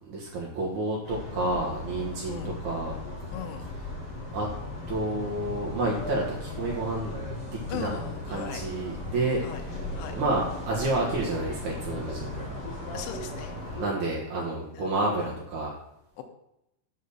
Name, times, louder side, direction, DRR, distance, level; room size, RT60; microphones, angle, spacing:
voice 1, 0.0-2.9 3.8-3.9 4.3-4.5 4.9-7.2 7.5-8.0 8.3-9.8 10.1-12.5 13.7-15.7, right 2 dB, 80° right, -3 dB, 1.7 m, -30 dB
sound 1, 1.0-13.8, left 2 dB, 45° left, 2.2 m, -37 dB
voice 2, 3.3-3.7 7.7-8.6 9.4-9.6 9.9-10.1 12.9-13.5 14.7-14.9 16.2-16.3, left 8 dB, 75° left, 4 dB, 2.6 m, -38 dB
7.7 x 4.2 x 6.5 m, 0.84 s
omnidirectional pair, 5.6 m